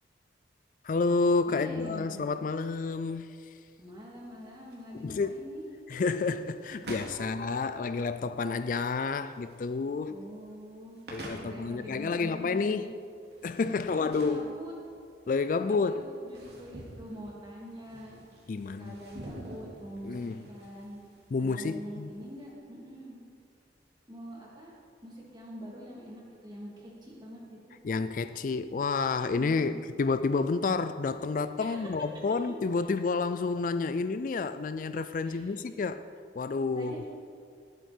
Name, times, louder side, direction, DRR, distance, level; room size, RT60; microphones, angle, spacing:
voice 1, 0.8-3.3 5.0-5.4 5.9-10.2 11.1-12.9 13.4-14.5 15.3-16.0 18.5-19.0 20.0-20.4 21.3-22.1 27.8-36.0 36.4-37.0, left 4 dB, 45° left, 11 dB, 0.3 m, -30 dB
voice 2, 1.5-2.2 3.8-5.6 10.1-12.9 13.9-14.7 15.6-18.2 18.8-21.0 21.4-23.2 24.1-24.7 25.0-27.4 29.3-29.8 31.6-31.9 35.2-35.5 36.7-37.1, equal, 25° right, -4 dB, 3.0 m, -45 dB
sound 1, 3.3-22.5, right 1 dB, 60° right, 2.6 m, -49 dB
20.0 x 9.2 x 4.5 m, 2.3 s
head